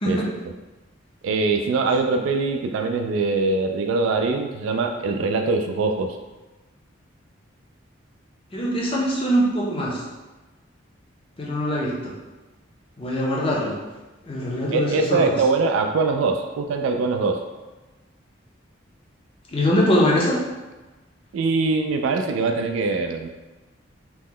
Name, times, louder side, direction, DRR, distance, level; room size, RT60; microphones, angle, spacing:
voice 1, 1.2-6.2 14.7-17.4 21.3-23.3, right 3 dB, 90° right, 5 dB, 0.3 m, -22 dB
voice 2, 8.5-10.0 11.4-12.1 13.0-13.7 14.2-15.2 19.5-20.4, equal, 30° left, -3 dB, 0.5 m, -22 dB
2.9 x 2.1 x 3.6 m, 1.1 s
head